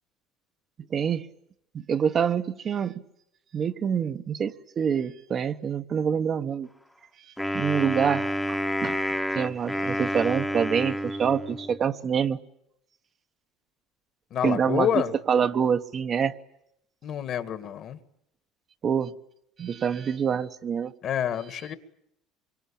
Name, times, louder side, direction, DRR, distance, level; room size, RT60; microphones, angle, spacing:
voice 1, 0.9-1.3 1.9-2.9 3.5-6.7 7.3-9.0 9.3-12.4 14.4-14.9 15.3-16.3 18.8-19.1 19.6-20.9, right 7 dB, 35° right, 1.0 m, -26 dB
Wind instrument woodwind instrument, 7.4-11.8, equal, 5° left, 1.1 m, -29 dB
voice 2, 14.3-15.1 17.0-18.0 21.0-21.7, left 9 dB, 45° left, 1.8 m, -28 dB
25.0 x 23.5 x 8.7 m
cardioid pair, 125°, 0 cm